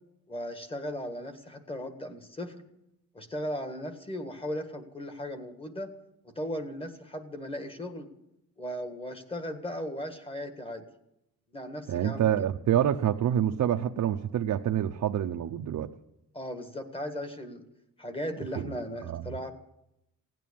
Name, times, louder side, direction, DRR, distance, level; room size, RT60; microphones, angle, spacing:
voice 1, 0.3-2.6 3.1-5.9 6.3-8.1 8.6-10.8 11.5-12.3 16.3-17.6 18.0-19.5, equal, 15° left, 8 dB, 1.6 m, -37 dB
voice 2, 11.9-15.9 18.6-18.8 19.0-19.3, right 10 dB, 60° right, 4 dB, 0.7 m, -27 dB
17.0 x 9.3 x 8.6 m, 0.83 s
wide cardioid pair, 165°, 34 cm